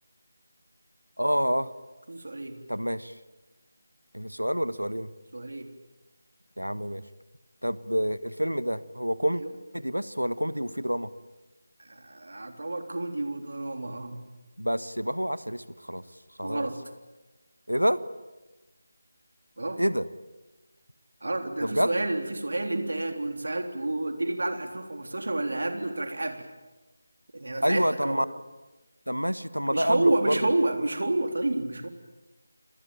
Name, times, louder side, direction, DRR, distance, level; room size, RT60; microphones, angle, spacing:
voice 1, 1.2-1.7 2.7-3.1 4.1-5.1 6.6-7.0 7.6-9.4 9.7-11.1 14.6-16.0 16.4-16.7 17.7-18.0 19.8-20.1 21.6-21.9 27.6-28.2 29.1-30.4, equal, 90° right, 15 dB, 1.4 m, -27 dB
voice 2, 2.1-2.6 5.3-5.7 9.4-9.5 11.8-14.2 16.4-16.8 19.6-19.8 21.2-26.5 27.3-28.2 29.7-31.9, right 2 dB, 60° right, 6 dB, 3.6 m, -29 dB
29.0 x 21.0 x 9.1 m, 1.1 s
figure-of-eight pair, 160°, 0 cm